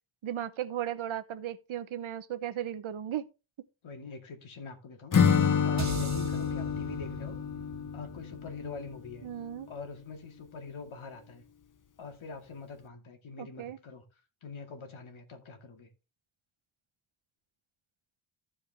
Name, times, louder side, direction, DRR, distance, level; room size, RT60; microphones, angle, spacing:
voice 1, 0.2-3.3 9.2-9.7 13.4-13.8, right 11 dB, 80° right, 1.0 m, -36 dB
voice 2, 3.8-7.4 7.9-9.3 9.7-11.4 12.0-14.0 14.4-15.9, left 4 dB, 80° left, 2.4 m, -44 dB
Acoustic guitar / Strum, 5.1-9.0, left 7 dB, 40° left, 0.8 m, -28 dB
sound 1, 5.8-10.1, right 6 dB, 35° right, 1.1 m, -41 dB
14.5 x 4.9 x 3.5 m
wide cardioid pair, 140°, 47 cm